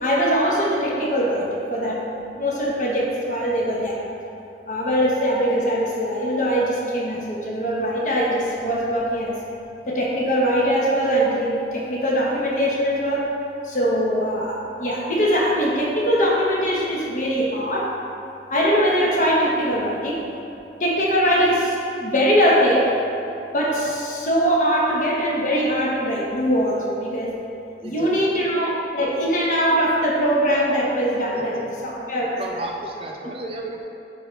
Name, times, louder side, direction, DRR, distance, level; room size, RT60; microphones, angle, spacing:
voice 1, 0.0-4.0 4.7-9.3 9.9-13.3 13.6-17.9 18.5-20.2 20.8-22.9 23.5-27.3 27.8-31.6 31.8-32.3, equal, 45° left, -4 dB, 1.3 m, -22 dB
voice 2, 27.8-28.5 31.3-31.7 32.4-33.8, right 2 dB, 30° right, 1 dB, 0.4 m, -34 dB
11.0 x 4.0 x 3.3 m, 2.8 s
head